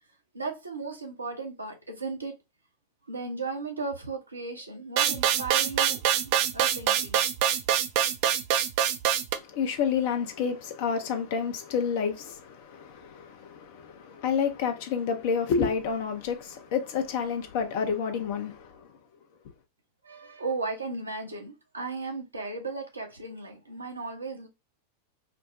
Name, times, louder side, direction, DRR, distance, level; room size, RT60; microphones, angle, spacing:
voice 1, 0.3-2.4 3.1-7.2 20.0-24.5, right 3 dB, 80° right, 0.8 m, -36 dB
sound 1, 5.0-9.3, right 10 dB, 45° right, 0.4 m, -24 dB
voice 2, 9.3-18.9, left 6 dB, 50° left, 0.7 m, -29 dB
4.4 x 2.1 x 2.5 m
figure-of-eight pair, 90°, 0 cm